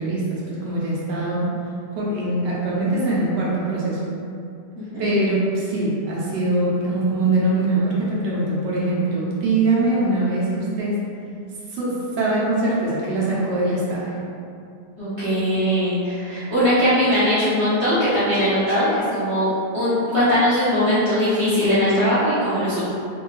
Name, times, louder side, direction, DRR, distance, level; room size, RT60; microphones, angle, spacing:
voice 1, 0.0-1.5 1.9-4.0 5.0-11.1 11.7-14.1, right 2 dB, 90° right, -6 dB, 1.4 m, -22 dB
voice 2, 15.0-22.9, equal, 50° right, -14 dB, 1.0 m, -20 dB
3.3 x 2.6 x 3.0 m, 2.5 s
omnidirectional pair, 1.8 m